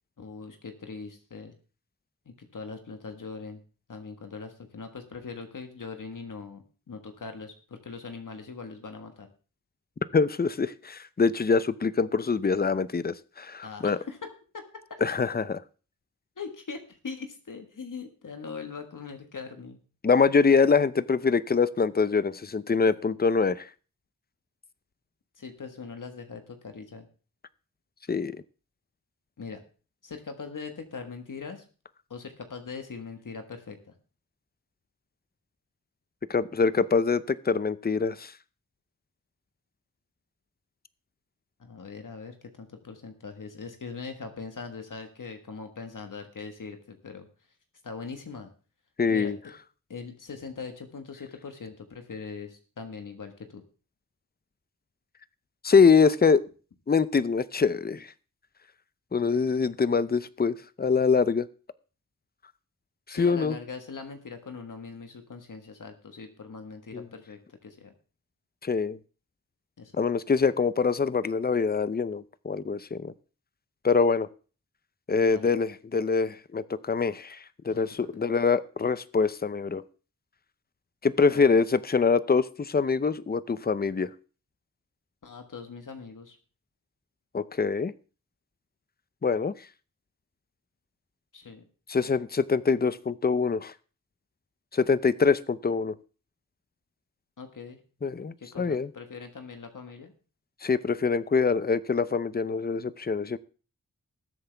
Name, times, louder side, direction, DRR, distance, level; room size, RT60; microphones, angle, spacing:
voice 1, 0.2-1.5 2.2-3.6 3.9-9.3 13.6-14.6 16.4-19.8 25.4-27.1 29.4-29.6 30.0-31.6 32.1-34.0 41.6-47.3 47.8-48.5 49.1-49.3 49.9-53.6 63.1-67.9 69.8-70.1 75.3-75.5 77.7-77.8 81.3-81.4 85.2-86.4 91.3-91.6 97.4-97.8 98.4-100.1, left 5 dB, 65° left, 5 dB, 1.6 m, -41 dB
voice 2, 10.1-14.0 15.0-15.6 20.0-23.7 28.1-28.3 36.3-38.3 49.0-49.4 55.6-56.4 56.9-58.1 59.1-61.5 63.1-63.6 66.9-67.0 68.6-69.0 69.9-73.1 73.8-74.3 75.1-77.4 77.6-79.8 81.0-84.1 87.3-87.9 89.2-89.5 91.9-93.7 94.7-95.9 98.0-98.9 100.6-103.4, left 5 dB, 30° left, 16 dB, 0.6 m, -24 dB
19.5 x 7.9 x 3.4 m, 0.37 s
wide cardioid pair, 75°, 34 cm